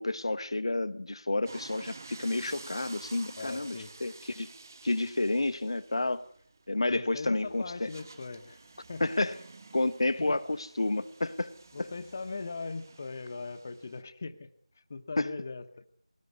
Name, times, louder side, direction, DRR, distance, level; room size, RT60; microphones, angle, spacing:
voice 1, 0.0-4.5 4.8-6.3 6.7-7.9 9.0-9.4 9.7-11.5 11.8-11.9 15.2-15.3, left 2 dB, 55° left, 0.9 m, -30 dB
sound 1, 1.5-14.0, right 3 dB, 30° right, 1.4 m, -51 dB
voice 2, 3.4-3.9 6.9-8.6 8.9-9.0 10.2-10.4 11.7-14.5 14.9-15.9, left 4 dB, 25° left, 1.0 m, -40 dB
21.0 x 19.5 x 9.5 m
figure-of-eight pair, 175°, 3 cm